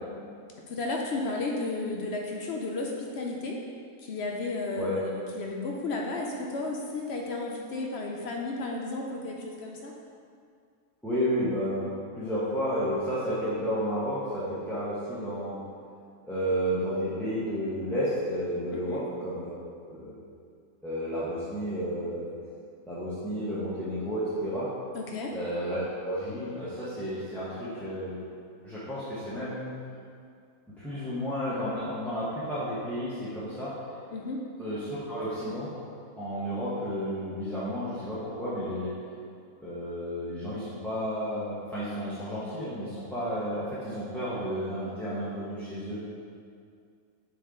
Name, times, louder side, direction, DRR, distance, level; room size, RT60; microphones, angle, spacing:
voice 1, 0.7-3.6 4.0-9.9 18.7-19.0 24.9-25.3 34.1-34.4, left 2 dB, 60° left, 0 dB, 0.7 m, -33 dB
voice 2, 11.0-15.6 16.2-19.5 19.8-20.1 20.8-22.3 22.9-24.7 25.3-28.2 28.6-29.8 30.8-33.7 34.6-35.7 36.2-38.9 39.6-46.0, equal, ahead, -12 dB, 0.9 m, -32 dB
6.7 x 4.3 x 3.7 m, 2.3 s
omnidirectional pair, 1.5 m